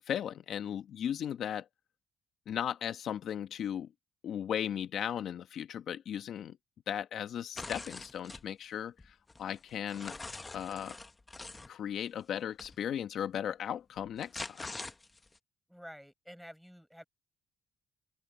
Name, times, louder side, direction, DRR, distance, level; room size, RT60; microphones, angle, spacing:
voice 1, 0.1-1.7 2.5-3.9 4.2-6.6 6.9-10.2 10.5-11.0 11.7-14.7, left 9 dB, 70° left, 1.2 m, -36 dB
sound 1, 7.6-8.5 9.0-11.7 12.6-12.8 14.0-15.4, left 3 dB, 20° left, 1.3 m, -44 dB
voice 2, 15.7-17.0, equal, ahead, 7.3 m, -50 dB
open air
cardioid pair, 90°, 0 cm